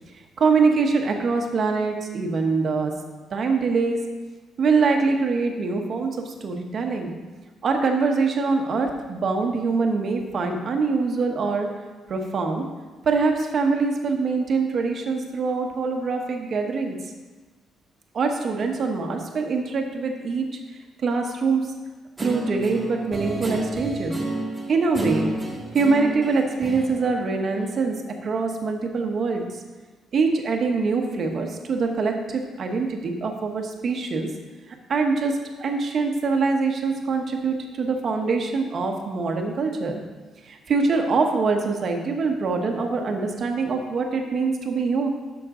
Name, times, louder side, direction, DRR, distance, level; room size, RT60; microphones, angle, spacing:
voice 1, 0.4-2.9 3.3-4.0 4.6-7.1 7.6-11.7 12.1-12.7 13.0-17.0 18.1-20.5 21.0-21.7 22.2-24.2 24.7-25.3 25.7-27.9 28.2-29.4 30.1-34.3 34.9-40.0 40.5-45.1, right 4 dB, 45° right, 3 dB, 1.1 m, -24 dB
Guitar, 22.2-28.0, right 1 dB, 15° right, 1.6 m, -31 dB
12.0 x 6.1 x 3.8 m, 1.3 s
cardioid pair, 130°, 0 cm